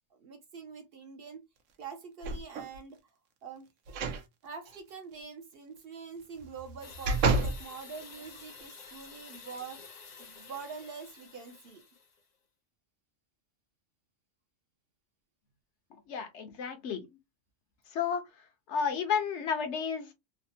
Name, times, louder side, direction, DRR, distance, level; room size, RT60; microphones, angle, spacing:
voice 1, 0.1-1.4 1.8-3.0 3.4-3.7 4.4-9.8 10.2-11.8, right 6 dB, 60° right, 0.7 m, -45 dB
sound 1, 2.2-2.8 3.9-4.2 4.7-4.8 6.4-7.6 8.2-8.3, right 3 dB, 80° right, 1.0 m, -30 dB
sound 2, 6.8-12.2, left 5 dB, 45° left, 0.6 m, -50 dB
voice 2, 16.1-17.2 17.9-18.2 18.7-20.1, left 6 dB, 70° left, 0.9 m, -32 dB
3.3 x 2.0 x 2.6 m
omnidirectional pair, 1.3 m